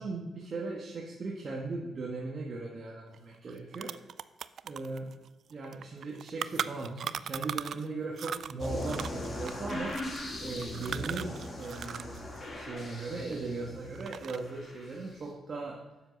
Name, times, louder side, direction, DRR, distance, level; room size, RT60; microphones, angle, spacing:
voice 1, 0.0-3.9 4.7-5.1 5.5-10.0 10.4-12.2 12.5-15.8, right 3 dB, 50° right, -2 dB, 1.5 m, -38 dB
sound 1, 3.1-3.2 3.5-7.9 8.2-12.2 12.4-13.6 14.0-14.6, right 8 dB, 65° right, 0.3 m, -39 dB
sound 2, 8.6-15.2, left 1 dB, 40° left, 2.6 m, -40 dB
7.5 x 7.4 x 5.9 m, 1.1 s
cardioid pair, 85°, 0 cm